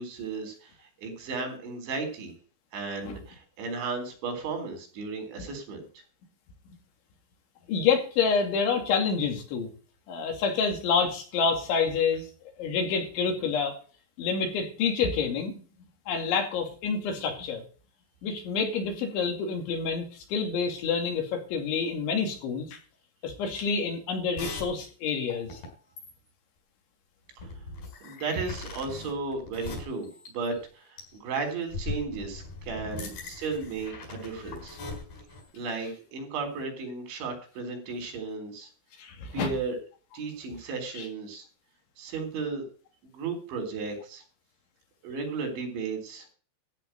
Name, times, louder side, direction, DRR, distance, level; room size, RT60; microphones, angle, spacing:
voice 1, 0.0-2.3 2.7-5.9 27.4-27.5 28.0-34.8 35.5-38.7 39.3-39.8 40.1-41.4 42.0-42.6 43.0-44.2 45.0-46.3, right 4 dB, 80° right, 4 dB, 6.0 m, -34 dB
voice 2, 7.7-9.7 10.1-12.2 12.6-13.7 14.2-15.6 16.1-17.6 18.2-22.8 23.2-25.6 39.0-39.5 41.0-41.1, left 5 dB, 85° left, 4 dB, 4.9 m, -28 dB
sound 1, 24.4-24.7 25.1-25.7 26.0-26.3 27.4-30.7 31.0-31.2 31.7-35.4, left 3 dB, 60° left, 6.1 m, -40 dB
14.0 x 5.5 x 9.0 m, 0.39 s
omnidirectional pair, 5.2 m